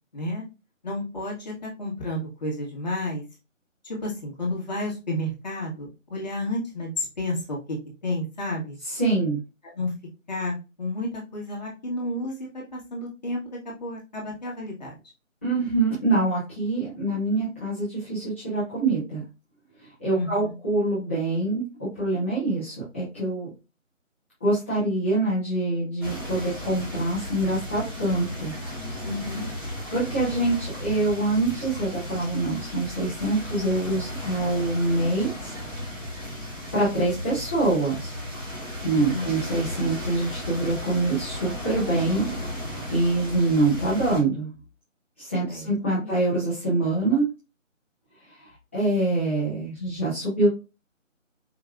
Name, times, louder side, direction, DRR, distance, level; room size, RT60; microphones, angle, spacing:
voice 1, 0.1-0.4 0.8-3.2 3.8-7.8 8.0-8.8 9.7-9.9 10.3-14.9 20.1-20.5 29.0-29.5 38.9-39.3 45.4-45.7 46.0-46.2, left 1 dB, 35° left, -3 dB, 1.5 m, -31 dB
voice 2, 8.9-9.4 15.4-19.2 20.0-23.5 24.4-28.5 29.9-35.5 36.7-38.1 38.8-42.3 42.9-44.5 45.2-47.3 48.7-50.5, right 2 dB, 10° left, -13 dB, 0.8 m, -25 dB
sound 1, 26.0-44.2, left 1 dB, 20° right, 1.7 m, -35 dB
4.9 x 3.3 x 2.2 m, 0.29 s
figure-of-eight pair, 155°, 39 cm